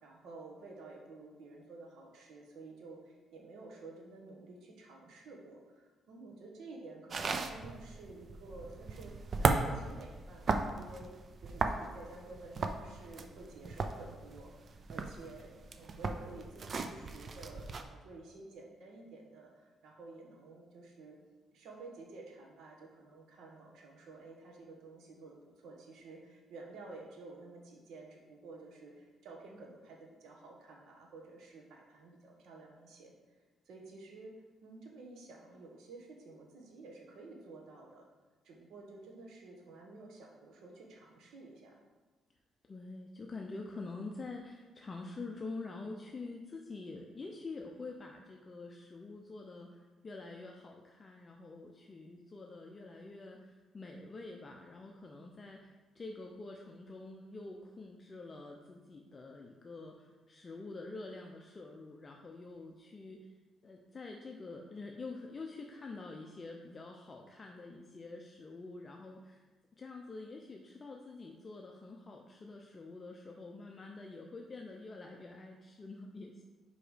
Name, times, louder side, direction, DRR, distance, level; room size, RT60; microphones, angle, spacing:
voice 1, 0.0-11.1 11.4-21.2 21.5-33.1 33.6-38.1 38.4-41.8, right 3 dB, 80° right, 0 dB, 1.3 m, -52 dB
sound 1, 7.1-17.8, right 4 dB, 45° right, 0.5 m, -36 dB
voice 2, 42.6-63.3 63.6-69.5 69.8-76.4, left 3 dB, 35° left, 1 dB, 0.6 m, -46 dB
5.0 x 4.8 x 5.0 m, 1.3 s
cardioid pair, 90°, 0 cm